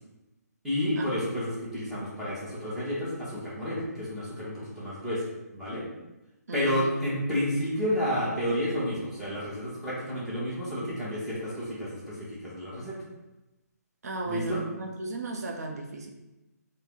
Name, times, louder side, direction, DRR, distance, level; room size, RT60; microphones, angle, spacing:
voice 1, 0.6-5.2 5.5-5.9 6.5-13.0 14.2-14.6, left 1 dB, 5° right, -9 dB, 0.8 m, -30 dB
voice 2, 6.5-6.9 14.0-16.1, right 3 dB, 65° right, 3 dB, 0.5 m, -35 dB
2.7 x 2.0 x 3.5 m, 0.99 s
figure-of-eight pair, 145°, 9 cm